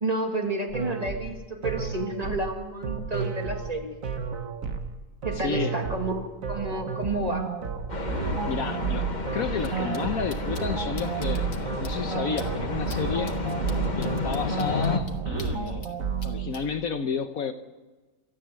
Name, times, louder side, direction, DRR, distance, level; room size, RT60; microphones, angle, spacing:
voice 1, 0.0-3.9 5.2-7.5, right 2 dB, 25° right, 3 dB, 2.1 m, -30 dB
sound 1, 0.7-16.5, right 6 dB, 55° right, 1.7 m, -32 dB
voice 2, 5.4-5.7 8.2-9.1 9.3-13.4 14.0-15.9 16.2-17.5, left 6 dB, 60° left, 8 dB, 1.2 m, -31 dB
sound 2, 7.9-15.0, left 4 dB, 30° left, 1.3 m, -32 dB
sound 3, 9.6-9.7 9.9-10.0 10.3-10.6 11.0-11.6 11.8-11.9 12.4-12.5 12.9-13.0 13.3-15.9 16.2-16.6, left 5 dB, 80° left, 2.4 m, -44 dB
29.5 x 13.0 x 7.6 m, 1.3 s
omnidirectional pair, 1.8 m